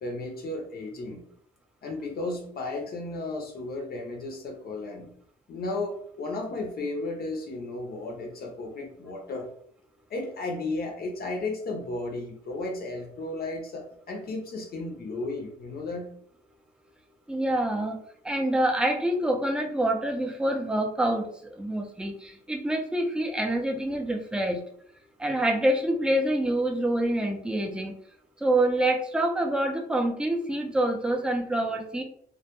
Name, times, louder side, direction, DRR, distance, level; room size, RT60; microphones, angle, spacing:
voice 1, 0.0-1.2 1.8-5.1 5.5-9.5 10.1-16.1, left 2 dB, 50° left, 2 dB, 0.6 m, -34 dB
voice 2, 17.3-18.0 18.2-24.6 25.2-27.9 28.4-32.0, right 1 dB, 5° right, 3 dB, 0.4 m, -26 dB
2.1 x 2.1 x 2.9 m, 0.64 s
cardioid pair, 90°, 20 cm